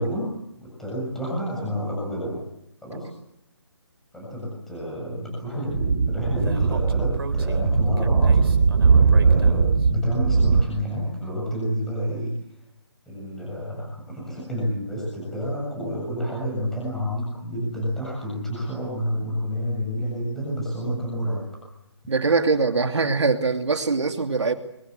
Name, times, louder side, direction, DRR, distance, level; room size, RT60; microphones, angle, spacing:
voice 1, 0.0-2.4 2.8-3.1 4.1-8.4 9.2-12.3 13.1-21.5, equal, ahead, -4 dB, 7.3 m, -29 dB
Speech / Wind, 5.7-10.6, right 5 dB, 55° right, 3.6 m, -19 dB
voice 2, 22.1-24.5, right 4 dB, 75° right, 6 dB, 2.9 m, -22 dB
24.5 x 23.0 x 8.2 m, 0.80 s
hypercardioid pair, 165°, 15 cm